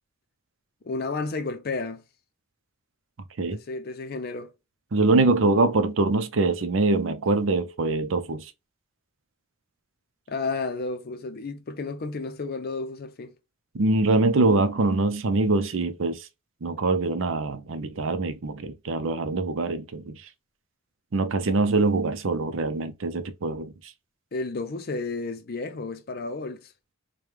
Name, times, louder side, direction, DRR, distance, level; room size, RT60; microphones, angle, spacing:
voice 1, 0.8-2.0 3.5-4.5 10.3-13.3 24.3-26.7, left 3 dB, 50° left, 0.5 m, -32 dB
voice 2, 4.9-8.5 13.7-16.3 16.6-20.2 21.1-23.9, right 3 dB, 65° right, 0.6 m, -24 dB
5.1 x 2.2 x 3.1 m
head